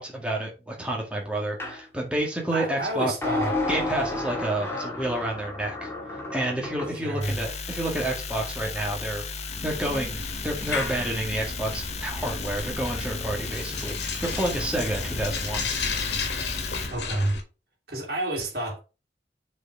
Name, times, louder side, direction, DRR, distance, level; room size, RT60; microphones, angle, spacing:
voice 1, 0.0-3.1 3.7-5.9 6.3-9.2 9.6-15.7, right 1 dB, 5° right, 2.0 m, -29 dB
sound 1, 1.6-1.8 3.2-7.0, left 2 dB, 15° left, 1.9 m, -31 dB
voice 2, 2.5-3.6 6.9-7.4 16.9-17.4 17.9-18.8, right 1 dB, 55° right, 2.6 m, -29 dB
sound 2, 7.2-16.9, left 4 dB, 35° left, 0.9 m, -35 dB
sound 3, 9.5-17.4, left 3 dB, 65° left, 1.8 m, -33 dB
6.7 x 4.6 x 4.6 m
head